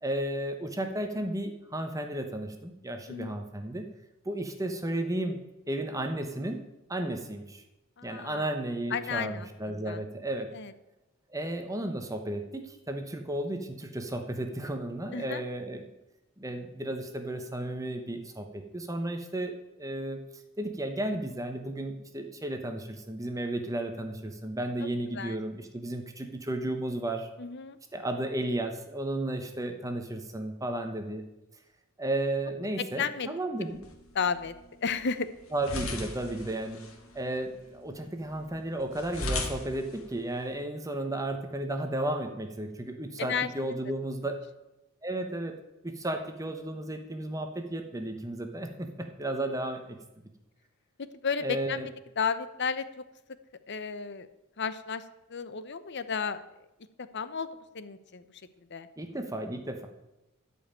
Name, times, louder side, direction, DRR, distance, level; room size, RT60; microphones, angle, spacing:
voice 1, 0.0-3.8 4.2-5.4 5.7-6.6 6.9-7.6 8.0-10.5 11.3-15.9 16.4-20.2 20.6-27.3 27.9-31.2 32.0-33.8 35.5-36.9 37.1-44.4 45.0-45.6 45.8-50.0 51.4-51.9 59.0-59.9, right 1 dB, 15° right, 5 dB, 1.1 m, -33 dB
voice 2, 8.0-8.5 8.9-10.0 10.5-10.7 15.1-15.4 24.8-24.9 25.1-25.4 27.4-27.8 33.0-33.3 34.1-34.5 34.8-35.3 43.2-43.8 51.2-52.9 53.7-54.3 54.6-55.0 55.3-56.4 57.0-58.2 58.6-58.9, left 6 dB, 55° left, 13 dB, 0.8 m, -33 dB
sound 1, 33.6-40.6, left 2 dB, 75° left, 2.0 m, -39 dB
13.0 x 5.6 x 8.9 m, 0.95 s
head